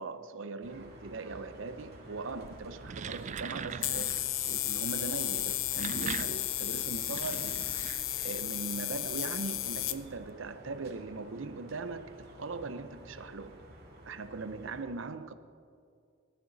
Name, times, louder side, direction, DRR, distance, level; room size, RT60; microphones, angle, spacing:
voice 1, 0.0-7.7 8.2-13.6 14.1-15.3, right 3 dB, 80° right, 0.7 m, -40 dB
sound 1, 0.6-14.8, right 1 dB, 55° right, 2.4 m, -51 dB
sound 2, 2.4-2.6 2.9-3.2 3.8-10.0, left 14 dB, 80° left, 0.5 m, -33 dB
sound 3, 2.6-4.3 5.5-8.5, right 6 dB, 40° right, 0.4 m, -41 dB
19.0 x 12.5 x 4.0 m
head